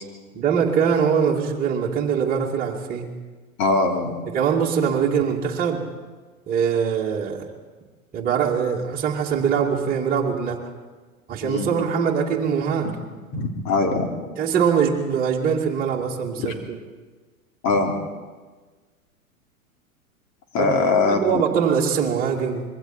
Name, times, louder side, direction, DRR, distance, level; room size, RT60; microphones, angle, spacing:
voice 1, 0.3-3.1 4.2-5.9 6.5-7.5 8.1-10.6 11.3-12.9 14.4-16.6 20.6-20.7 21.0-22.6, right 7 dB, 20° right, -3 dB, 2.6 m, -22 dB
voice 2, 3.6-4.3 11.4-11.7 13.3-14.1 16.4-16.5 17.6-18.0 20.5-21.2, left 3 dB, 35° left, 2 dB, 3.5 m, -21 dB
26.0 x 22.0 x 4.5 m, 1.4 s
figure-of-eight pair, 100°, 43 cm